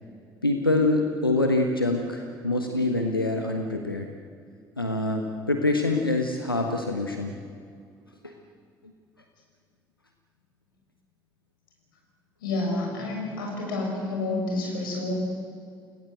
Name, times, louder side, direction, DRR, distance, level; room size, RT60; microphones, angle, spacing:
voice 1, 0.4-4.1 4.8-7.4 8.2-8.3, left 2 dB, 90° left, 3 dB, 1.2 m, -25 dB
voice 2, 12.4-15.1, left 2 dB, 75° left, -1 dB, 6.7 m, -29 dB
29.0 x 19.0 x 7.9 m, 2.3 s
figure-of-eight pair, 50°, 12 cm